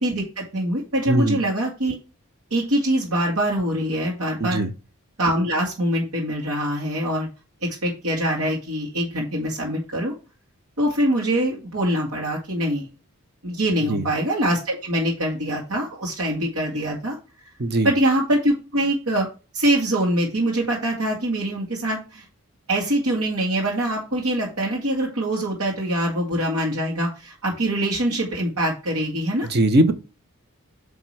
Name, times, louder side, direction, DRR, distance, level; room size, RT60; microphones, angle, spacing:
voice 1, 0.0-2.0 2.5-4.6 5.2-7.3 7.6-10.1 10.8-12.9 13.4-17.2 17.8-19.3 19.5-22.2 22.7-29.5, right 1 dB, 90° right, 2.2 m, -24 dB
voice 2, 1.1-1.4 4.4-4.7 13.9-14.1 17.6-17.9 29.4-29.9, right 1 dB, 45° right, 0.8 m, -20 dB
8.6 x 3.6 x 4.7 m
head